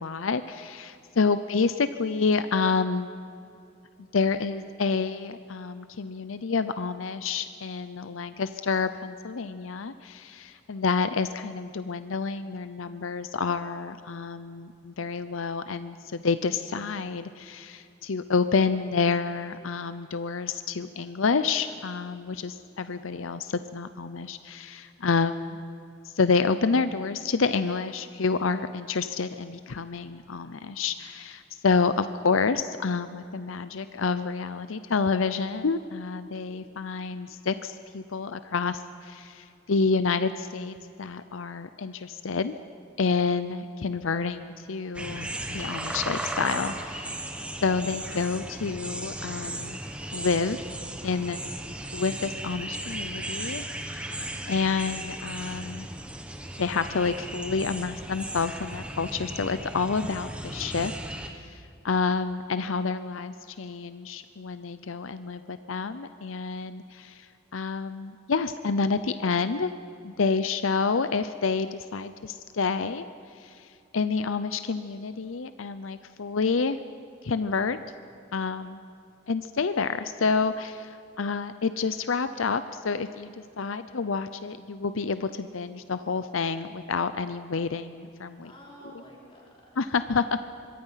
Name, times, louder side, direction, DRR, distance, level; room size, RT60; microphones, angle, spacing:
voice 1, 0.0-3.1 4.1-25.6 26.2-42.5 43.0-47.2 47.6-49.8 50.1-50.6 51.0-51.4 51.9-54.2 54.5-55.9 56.6-60.9 61.3-67.3 67.5-69.7 70.0-73.1 73.4-73.6 73.9-76.8 77.2-77.8 78.3-78.8 79.3-88.5 88.9-89.0 89.8-90.4, left 4 dB, 85° left, 11 dB, 0.7 m, -28 dB
sound 1, 44.9-61.3, right 1 dB, 5° right, 1.1 m, -36 dB
voice 2, 88.4-89.8, equal, 25° left, -4 dB, 5.2 m, -50 dB
24.5 x 22.5 x 5.8 m, 2.5 s
head